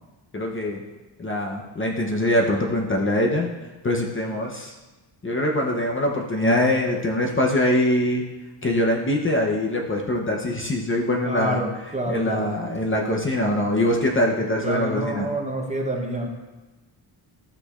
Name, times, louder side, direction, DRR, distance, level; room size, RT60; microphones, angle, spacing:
voice 1, 0.3-0.8 1.2-3.5 3.8-4.8 5.2-8.2 8.6-11.6 12.1-15.3, left 1 dB, 25° left, 0 dB, 0.8 m, -23 dB
voice 2, 11.2-12.6 14.6-16.3, right 1 dB, 15° right, 0 dB, 0.9 m, -28 dB
13.0 x 6.3 x 2.4 m, 1.2 s
wide cardioid pair, 160°, 47 cm